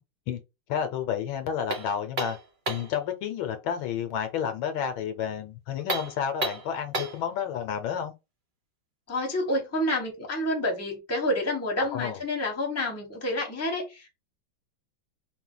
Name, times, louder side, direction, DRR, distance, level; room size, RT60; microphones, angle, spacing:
voice 1, 0.7-2.4 2.7-8.1 11.8-12.2, left 8 dB, 75° left, 1.4 m, -30 dB
sound 1, 1.7-3.0 5.8-7.3, right 2 dB, 90° right, 0.4 m, -32 dB
voice 2, 9.1-14.2, left 1 dB, 10° left, 0.8 m, -29 dB
4.3 x 2.3 x 3.8 m
omnidirectional pair, 2.3 m